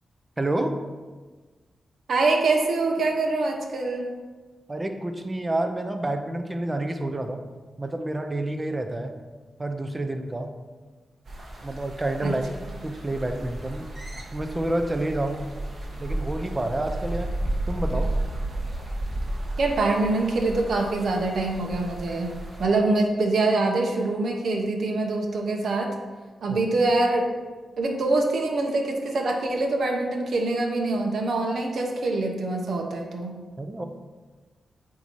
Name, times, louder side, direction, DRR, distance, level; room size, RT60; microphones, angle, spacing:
voice 1, 0.4-0.7 4.7-7.4 7.8-9.1 9.6-10.5 11.6-12.5 12.8-13.9 14.3-15.5 16.0-17.3 17.7-18.1 26.5-26.6 33.6-33.8, right 1 dB, 25° right, 6 dB, 0.6 m, -28 dB
voice 2, 2.1-4.1 12.2-12.3 19.6-22.3 22.6-25.9 26.4-27.2 27.8-33.3, right 2 dB, 70° right, 2 dB, 0.9 m, -24 dB
sound 1, 11.3-22.6, right 1 dB, 50° right, 1.3 m, -33 dB
8.4 x 2.8 x 4.6 m, 1.4 s
cardioid pair, 85°, 0 cm